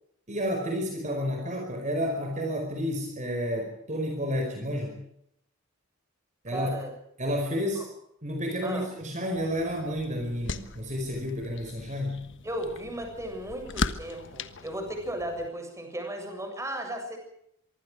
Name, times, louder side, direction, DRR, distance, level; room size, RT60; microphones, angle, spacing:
voice 1, 0.3-5.0 6.4-6.7 7.2-7.9 8.2-12.2, equal, 35° right, 3 dB, 5.0 m, -30 dB
voice 2, 6.5-6.9 7.7-7.9 8.6-8.9 12.4-17.2, right 1 dB, 15° right, 4 dB, 7.3 m, -35 dB
sound 1, 9.3-15.5, left 3 dB, 65° left, 1.4 m, -38 dB
25.0 x 24.0 x 4.9 m, 0.75 s
head